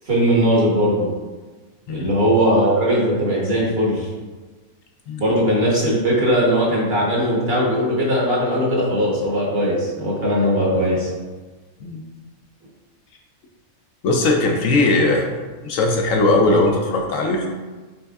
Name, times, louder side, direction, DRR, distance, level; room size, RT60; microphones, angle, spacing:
voice 1, 0.1-1.1 1.9-4.1 5.2-11.1, equal, 45° right, -5 dB, 1.2 m, -19 dB
voice 2, 14.0-15.3 15.6-17.5, left 2 dB, 70° left, 1 dB, 0.9 m, -19 dB
6.0 x 3.1 x 2.3 m, 1.3 s
omnidirectional pair, 1.5 m